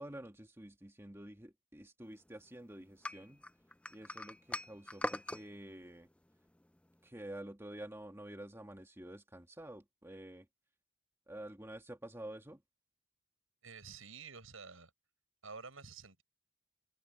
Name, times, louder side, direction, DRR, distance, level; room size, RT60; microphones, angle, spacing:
voice 1, 0.0-3.4 3.9-6.1 7.0-10.5 11.3-12.6, right 1 dB, 10° right, 2.1 m, -49 dB
sound 1, 3.0-5.4, left 1 dB, 5° left, 0.4 m, -41 dB
voice 2, 13.6-14.9 15.4-16.2, right 5 dB, 80° right, 6.5 m, -50 dB
open air
head